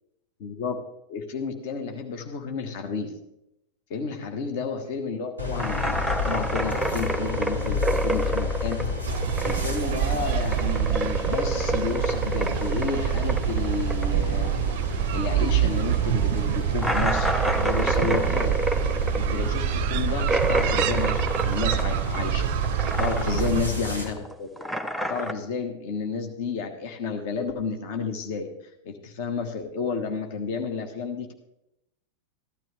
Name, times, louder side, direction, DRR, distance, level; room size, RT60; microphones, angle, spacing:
voice 1, 0.4-0.8 1.1-3.1 3.9-8.9 9.4-14.5 15.1-18.6 19.2-22.5 23.0-24.5 25.1-28.5 28.8-31.3, left 5 dB, 50° left, 6 dB, 1.3 m, -31 dB
sound 1, 5.4-24.0, left 4 dB, 80° left, 2.6 m, -32 dB
sound 2, 5.6-9.9 10.1-15.2 15.4-15.5 15.9-16.0 16.8-22.4 22.6-23.6 23.8-25.3, right 1 dB, ahead, 0.9 m, -28 dB
sound 3, 9.1-23.7, right 12 dB, 45° right, 0.5 m, -26 dB
15.0 x 12.0 x 3.4 m, 0.84 s
figure-of-eight pair, 90°, 0 cm